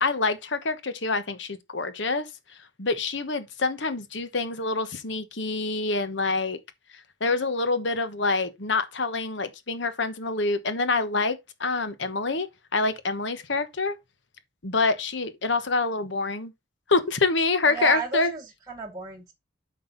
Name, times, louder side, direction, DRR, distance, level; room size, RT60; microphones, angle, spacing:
voice 1, 0.0-2.3 2.8-6.6 7.2-12.5 12.7-14.0 14.6-16.5 16.9-18.3, left 3 dB, 60° left, 1.1 m, -26 dB
voice 2, 17.7-19.3, right 4 dB, 15° right, 1.0 m, -33 dB
8.5 x 5.5 x 4.0 m
head